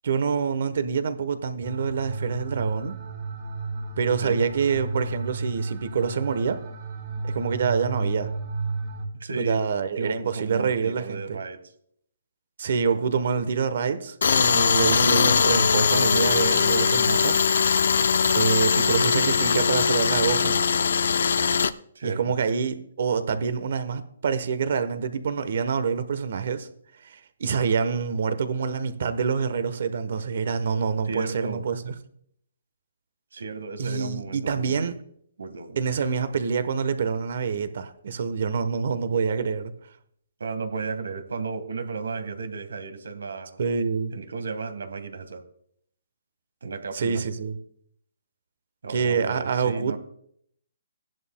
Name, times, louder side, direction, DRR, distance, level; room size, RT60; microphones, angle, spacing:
voice 1, 0.0-3.0 4.0-6.6 7.2-8.3 9.4-11.4 12.6-17.4 18.3-20.6 22.0-26.7 27.0-31.9 33.8-35.0 35.8-39.7 43.6-44.2 46.9-47.6 48.9-50.0, right 6 dB, 55° right, 1.0 m, -26 dB
sound 1, 1.6-9.1, right 3 dB, 25° right, 2.4 m, -32 dB
voice 2, 9.2-9.6 10.0-11.6 21.9-22.4 31.0-31.6 33.3-34.9 35.4-35.8 40.4-43.6 44.1-45.4 46.6-47.2 48.8-50.0, right 4 dB, 85° right, 1.6 m, -34 dB
Tools, 14.2-21.7, left 6 dB, 70° left, 0.5 m, -21 dB
16.0 x 11.0 x 2.2 m
hypercardioid pair, 165°, 0 cm